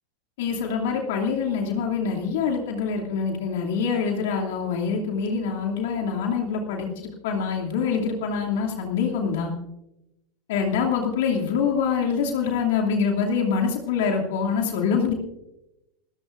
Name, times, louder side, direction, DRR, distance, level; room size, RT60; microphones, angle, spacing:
voice 1, 0.4-9.5 10.5-15.1, left 6 dB, 65° left, 0 dB, 2.7 m, -25 dB
27.5 x 14.5 x 2.6 m, 0.91 s
hypercardioid pair, 90°, 0 cm